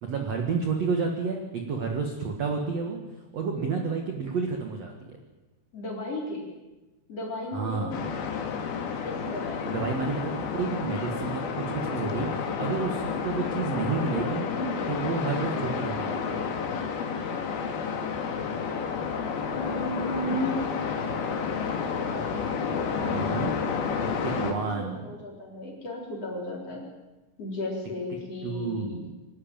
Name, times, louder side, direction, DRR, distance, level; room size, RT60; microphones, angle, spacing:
voice 1, 0.0-3.0 3.3-5.2 7.5-8.0 9.6-14.5 14.9-16.4 23.0-23.5 24.2-25.1 28.4-29.1, right 5 dB, 60° right, 2 dB, 1.8 m, -30 dB
voice 2, 5.7-6.4 7.1-7.9 9.0-9.7 11.9-12.3 14.3-15.0 19.5-20.6 22.7-23.2 24.5-26.8 27.4-29.0, left 1 dB, 35° left, -2 dB, 4.7 m, -35 dB
sound 1, 7.9-24.5, left 6 dB, 60° left, 3.5 m, -30 dB
25.5 x 12.5 x 9.1 m, 1.1 s
omnidirectional pair, 5.4 m